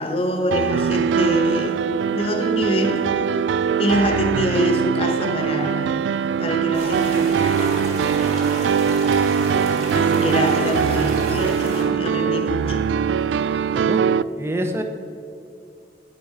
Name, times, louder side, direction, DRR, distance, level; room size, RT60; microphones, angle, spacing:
voice 1, 0.0-1.8 2.1-3.1 3.8-6.0 6.4-7.8 9.9-12.9, left 1 dB, 30° left, 5 dB, 1.2 m, -25 dB
sound 1, 0.5-14.2, right 7 dB, 90° right, 0.3 m, -21 dB
sound 2, 6.7-11.8, right 1 dB, 40° right, 3.0 m, -32 dB
voice 2, 13.7-14.8, equal, 15° right, 5 dB, 0.8 m, -28 dB
10.5 x 8.3 x 5.6 m, 2.5 s
head